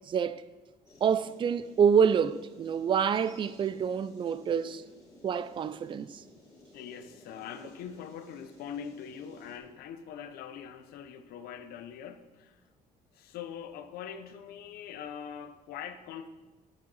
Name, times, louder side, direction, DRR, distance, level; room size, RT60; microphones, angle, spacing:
voice 1, 0.1-0.4 1.0-4.8 5.2-6.2, right 7 dB, 30° right, 0.4 m, -27 dB
sound 1, 0.9-9.6, left 1 dB, 20° left, 2.6 m, -56 dB
voice 2, 6.7-12.6 13.1-16.3, left 8 dB, 85° left, 0.7 m, -43 dB
8.9 x 8.4 x 4.1 m
cardioid pair, 125°, 15 cm